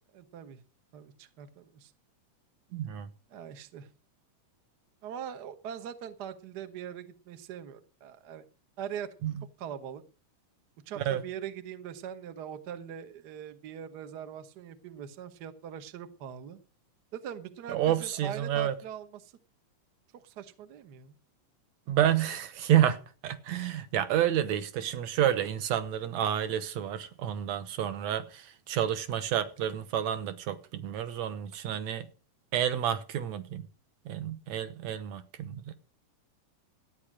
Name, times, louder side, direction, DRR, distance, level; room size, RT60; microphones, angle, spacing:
voice 1, 0.1-0.6 0.9-1.9 3.3-3.9 5.0-8.4 8.8-9.1 9.6-10.0 10.9-16.6 17.1-19.3 20.1-21.1, right 9 dB, 85° right, 0.9 m, -42 dB
voice 2, 2.7-3.1 9.2-9.3 11.0-11.2 17.7-18.8 21.9-32.1 32.5-33.7 34.1-35.7, right 10 dB, 70° right, 1.9 m, -29 dB
13.5 x 9.3 x 6.1 m
omnidirectional pair, 3.8 m